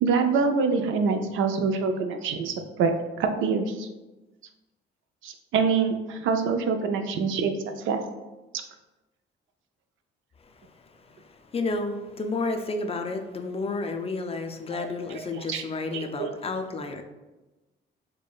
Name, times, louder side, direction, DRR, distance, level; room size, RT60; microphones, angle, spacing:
voice 1, 0.0-2.9 3.2-3.9 5.2-7.5 7.9-8.0 14.7-14.9 15.1-15.6 15.9-16.3, right 5 dB, 80° right, 6 dB, 0.4 m, -25 dB
voice 2, 11.0-17.0, left 3 dB, 30° left, 6 dB, 0.4 m, -31 dB
4.6 x 2.2 x 2.3 m, 1.1 s
cardioid pair, 90°, 20 cm